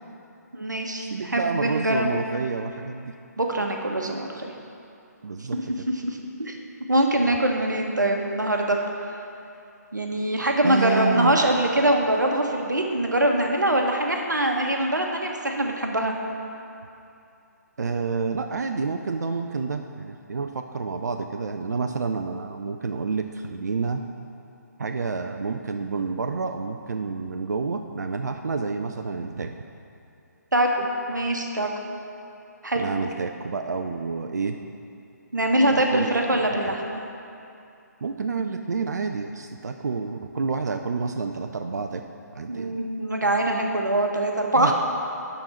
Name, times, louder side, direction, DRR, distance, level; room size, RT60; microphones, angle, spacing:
voice 1, 0.5-2.2 3.4-4.5 5.5-5.6 6.0-6.6 6.9-8.8 9.9-16.1 30.5-31.7 32.6-32.9 35.3-37.0 42.5-44.7, right 1 dB, 85° right, 2 dB, 1.1 m, -23 dB
voice 2, 1.0-3.1 5.2-5.9 10.6-11.4 17.8-24.0 24.8-29.5 32.8-34.6 35.9-36.7 38.0-42.0 42.4-42.8 44.6-44.7, right 4 dB, 70° right, 6 dB, 0.4 m, -29 dB
11.0 x 3.9 x 5.7 m, 2.6 s
figure-of-eight pair, 140°, 10 cm